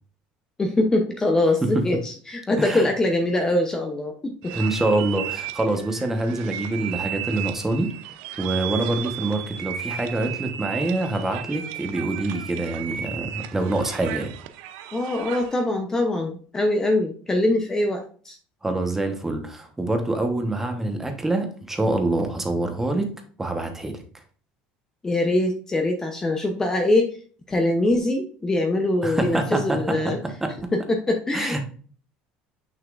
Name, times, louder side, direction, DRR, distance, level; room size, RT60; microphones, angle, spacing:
voice 1, 0.6-4.5 14.9-18.4 25.0-27.2 27.5-30.2 30.7-31.6, left 2 dB, 15° left, 4 dB, 0.8 m, -23 dB
sound 1, 4.4-15.6, right 11 dB, 75° right, 0.6 m, -34 dB
voice 2, 4.5-7.9 8.4-14.3 18.6-23.1 23.4-24.0 29.0-30.1 30.4-30.7 31.3-31.6, right 2 dB, 10° right, 5 dB, 1.1 m, -25 dB
6.3 x 5.8 x 2.5 m, 0.43 s
cardioid pair, 125°, 3 cm